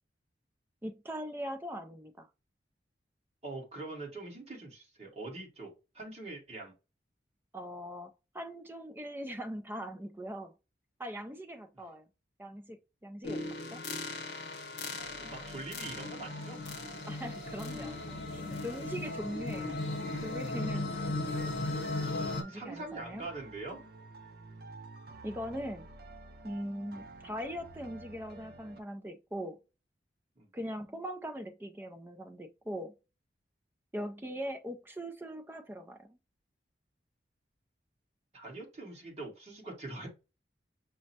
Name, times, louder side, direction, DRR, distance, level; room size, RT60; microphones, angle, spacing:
voice 1, 0.8-2.3 7.5-10.5 11.0-12.1 12.4-13.4 13.7-13.8 17.1-18.0 18.3-19.9 20.2-21.1 22.4-23.3 25.2-25.9 26.4-29.6 30.5-32.9 33.9-36.2, equal, 10° right, 0.4 m, -41 dB
voice 2, 3.4-6.7 15.2-16.8 20.7-20.9 22.5-23.8 30.4-30.5 38.3-40.1, right 2 dB, 35° right, 1.5 m, -43 dB
sound 1, 13.2-22.4, left 2 dB, 70° left, 0.9 m, -37 dB
sound 2, 15.0-28.8, right 3 dB, 55° right, 0.6 m, -51 dB
6.1 x 2.1 x 2.7 m
head